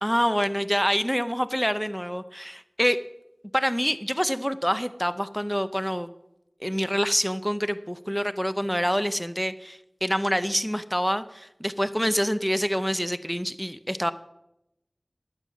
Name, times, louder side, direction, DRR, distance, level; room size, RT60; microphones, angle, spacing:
voice 1, 0.0-3.0 3.5-6.1 6.6-14.1, equal, ahead, 11 dB, 0.6 m, -26 dB
13.0 x 6.0 x 8.5 m, 0.87 s
wide cardioid pair, 40°, 0 cm